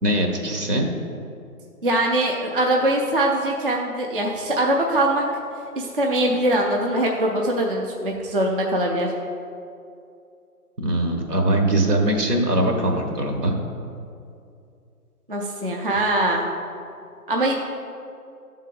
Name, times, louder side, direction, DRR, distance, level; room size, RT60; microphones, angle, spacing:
voice 1, 0.0-0.9 10.8-13.6, right 1 dB, 80° right, 3 dB, 1.3 m, -21 dB
voice 2, 1.8-5.2 5.7-9.1 15.3-16.4 17.3-17.5, right 1 dB, 40° right, 0 dB, 0.4 m, -22 dB
10.5 x 3.7 x 3.8 m, 2.5 s
hypercardioid pair, 155°, 46 cm